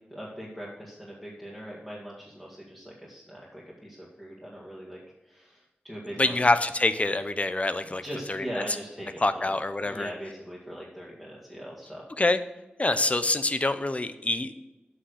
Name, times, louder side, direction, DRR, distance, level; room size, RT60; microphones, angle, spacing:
voice 1, 0.1-6.4 7.8-9.5 9.8-12.0, equal, 5° left, -5 dB, 2.2 m, -41 dB
voice 2, 6.2-8.0 8.3-8.6 9.2-10.1 12.2-12.4 12.8-14.5, left 2 dB, 35° left, 12 dB, 0.8 m, -25 dB
7.6 x 6.0 x 6.5 m, 1.0 s
cardioid pair, 55°, 4 cm